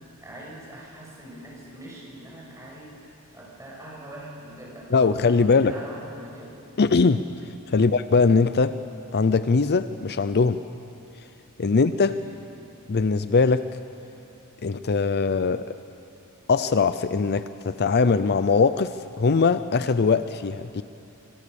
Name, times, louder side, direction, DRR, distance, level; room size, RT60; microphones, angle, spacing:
voice 1, 0.2-6.6 7.7-7.9 11.7-11.8 12.2-12.4, right 1 dB, 15° right, -4 dB, 7.5 m, -43 dB
voice 2, 4.9-5.7 6.8-7.2 7.7-8.8 9.1-10.6 11.6-12.2 12.9-13.7 14.6-15.8 16.5-20.8, left 4 dB, 50° left, 12 dB, 0.6 m, -21 dB
25.5 x 25.0 x 7.1 m, 2.7 s
head